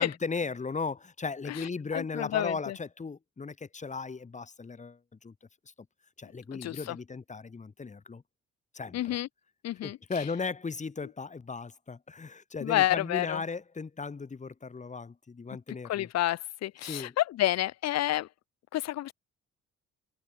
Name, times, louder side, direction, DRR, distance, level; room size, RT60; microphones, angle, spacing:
voice 1, 0.0-5.3 6.2-8.2 8.7-9.2 9.8-16.1 16.8-17.1, left 4 dB, 25° left, 1.1 m, -36 dB
voice 2, 1.9-2.8 6.5-7.0 8.9-9.3 9.6-10.0 12.6-13.4 15.9-18.3 18.7-19.1, left 14 dB, 60° left, 0.6 m, -29 dB
cardioid pair, 90°, 30 cm